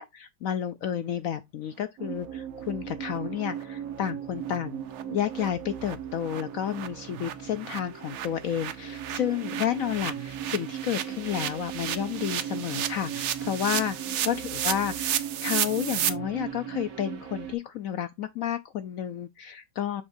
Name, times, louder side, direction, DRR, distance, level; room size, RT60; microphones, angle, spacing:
voice 1, 0.0-4.8 5.1-14.0 14.2-20.0, left 10 dB, 75° left, 0.8 m, -31 dB
sound 1, 2.0-17.5, right 9 dB, 55° right, 1.4 m, -38 dB
sound 2, 3.1-3.2 3.6-3.7 4.0-4.1 4.5-4.6 4.9-5.0 5.3-5.5 5.8-5.9 6.2-16.1, right 10 dB, 70° right, 0.7 m, -33 dB
7.1 x 5.2 x 2.6 m
omnidirectional pair, 1.9 m